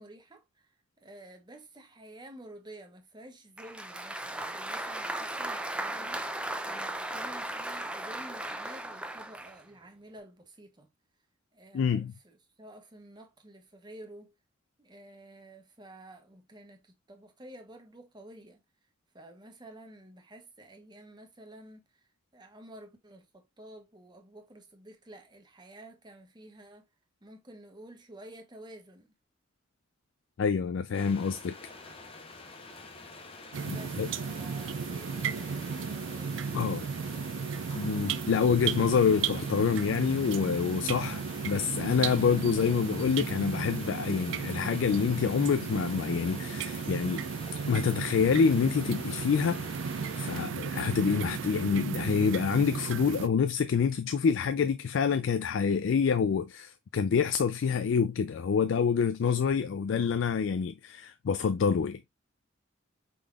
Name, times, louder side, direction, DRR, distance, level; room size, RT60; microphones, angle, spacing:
voice 1, 0.0-10.9 11.5-14.3 14.8-18.6 19.1-22.0 22.3-26.8 27.2-29.1 30.9-31.3 33.7-36.9, right 1 dB, 25° right, 1.0 m, -51 dB
Applause, 3.6-9.6, right 1 dB, 5° right, 0.4 m, -36 dB
voice 2, 11.7-12.1 30.4-31.6 33.7-34.1 36.5-36.8 37.8-47.2 47.7-49.7 50.2-62.0, left 6 dB, 75° left, 0.4 m, -27 dB
sound 1, 30.9-50.4, left 3 dB, 30° left, 0.8 m, -47 dB
sound 2, 33.5-53.3, right 6 dB, 70° right, 0.4 m, -35 dB
5.1 x 3.8 x 2.3 m
head